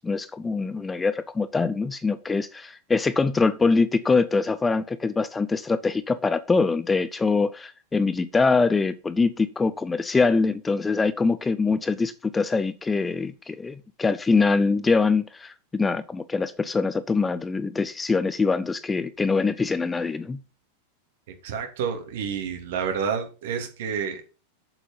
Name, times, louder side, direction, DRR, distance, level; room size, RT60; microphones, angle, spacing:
voice 1, 0.0-20.4, left 4 dB, 15° left, 0.6 m, -23 dB
voice 2, 21.4-24.3, right 7 dB, 55° right, 2.9 m, -29 dB
8.1 x 7.6 x 5.5 m
figure-of-eight pair, 90°, 0 cm